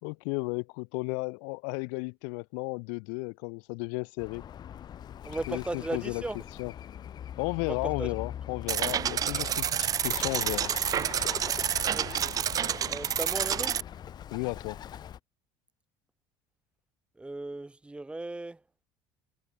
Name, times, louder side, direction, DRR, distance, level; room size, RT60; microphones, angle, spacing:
voice 1, 0.0-4.4 5.5-6.2 6.6-6.7 7.4-10.7 14.3-14.8, left 40 dB or more, 80° left, 1.7 m, -34 dB
Bird, 4.2-15.2, left 9 dB, 45° left, 5.4 m, -41 dB
voice 2, 5.2-6.4 7.6-8.2 11.9-12.2 12.9-13.8 17.2-18.6, right 2 dB, 10° right, 7.1 m, -36 dB
sound 1, 8.7-13.8, right 9 dB, 35° right, 0.6 m, -29 dB
supercardioid pair, 110°, 10 cm